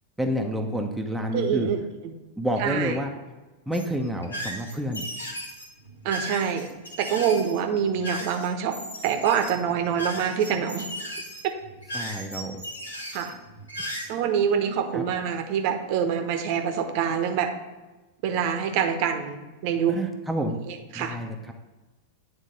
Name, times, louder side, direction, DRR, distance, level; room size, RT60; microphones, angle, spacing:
voice 1, 0.2-1.7 2.4-3.1 3.7-5.0 11.9-12.6 14.9-15.1 19.9-20.6 20.9-21.5, equal, ahead, 1 dB, 0.7 m, -29 dB
voice 2, 1.3-1.8 2.6-2.9 6.0-6.7 7.0-8.8 9.0-10.9 13.1-13.3 14.1-17.5 18.2-20.0 20.9-21.2, right 8 dB, 45° right, 6 dB, 0.8 m, -25 dB
sound 1, 3.7-14.1, equal, 80° left, 1.3 m, -36 dB
9.2 x 3.6 x 5.2 m, 1.2 s
figure-of-eight pair, 90°, 0 cm